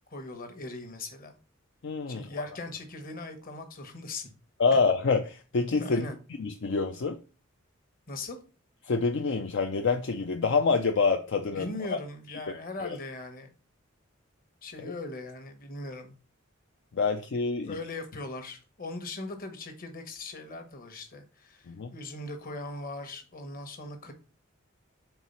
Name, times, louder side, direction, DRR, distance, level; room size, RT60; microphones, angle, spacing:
voice 1, 0.1-1.4 2.1-4.3 4.7-4.8 5.8-6.2 8.1-8.4 11.6-13.5 14.6-16.1 17.6-24.1, left 2 dB, 45° left, 1.2 m, -40 dB
voice 2, 1.8-2.3 4.6-6.1 6.4-7.2 8.9-11.7 12.8-13.0 14.8-14.9 16.9-17.8 21.7-21.9, left 4 dB, 65° left, 0.5 m, -26 dB
4.6 x 3.9 x 5.5 m
head